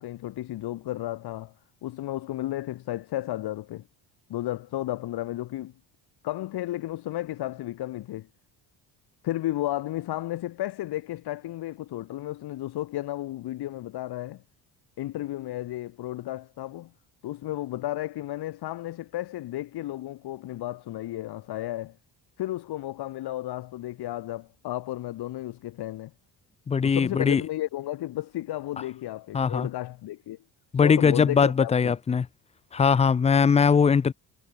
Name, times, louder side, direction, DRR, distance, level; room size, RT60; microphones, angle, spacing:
voice 1, 0.0-1.5 1.8-3.8 4.3-5.7 6.2-8.3 9.2-14.4 15.0-16.9 17.2-22.0 22.4-26.1 26.8-30.4 30.8-32.0, left 15 dB, 70° left, 2.2 m, -33 dB
voice 2, 26.7-27.4 29.3-29.7 30.7-32.3 32.7-34.1, left 6 dB, 15° left, 0.4 m, -21 dB
cardioid pair, 150°, 41 cm